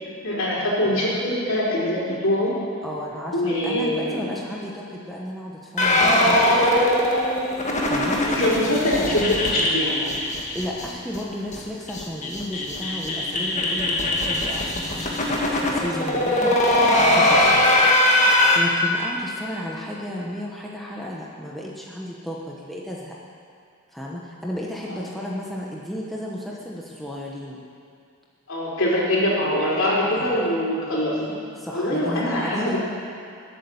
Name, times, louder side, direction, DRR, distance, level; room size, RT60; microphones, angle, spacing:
voice 1, 0.2-2.5 3.3-4.3 8.2-10.0 24.9-25.0 28.5-31.2 31.7-32.8, left 1 dB, 60° left, -4 dB, 4.1 m, -23 dB
voice 2, 2.8-6.8 7.8-8.2 10.5-17.6 18.3-23.1 23.9-27.6 30.2-30.4 31.1-32.8, equal, ahead, -4 dB, 1.2 m, -33 dB
sound 1, 5.8-10.9 11.1-11.2 11.5-11.6 11.9-18.6, left 1 dB, 30° left, 1.7 m, -21 dB
20.0 x 8.6 x 7.1 m, 2.4 s
head